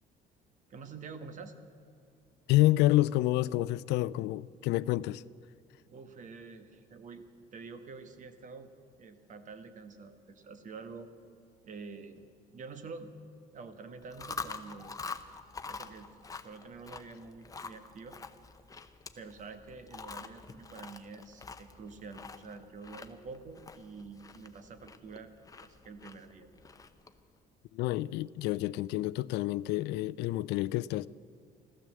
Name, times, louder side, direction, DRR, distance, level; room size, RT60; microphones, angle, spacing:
voice 1, 0.7-1.6 5.9-7.2 7.5-8.7 9.0-11.1 11.6-12.3 12.5-13.1 13.5-15.0 15.7-18.2 19.1-25.3 25.6-26.5, right 4 dB, 50° right, 1.4 m, -47 dB
voice 2, 2.5-5.2 27.7-31.1, left 17 dB, 85° left, 0.4 m, -28 dB
Chewing mastication, 14.0-27.2, left 4 dB, 20° left, 0.9 m, -46 dB
15.0 x 12.5 x 7.6 m
cardioid pair, 110°, 17 cm